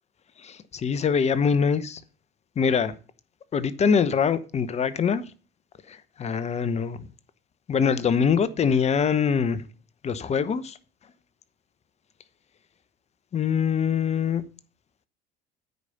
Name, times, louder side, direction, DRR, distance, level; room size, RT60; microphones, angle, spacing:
voice 1, 0.4-2.0 2.6-2.9 3.5-5.2 5.9-7.0 7.7-9.6 10.0-10.8 13.3-14.4, left 6 dB, 35° left, 0.9 m, -24 dB
9.2 x 5.0 x 6.9 m
hypercardioid pair, 70°, 18 cm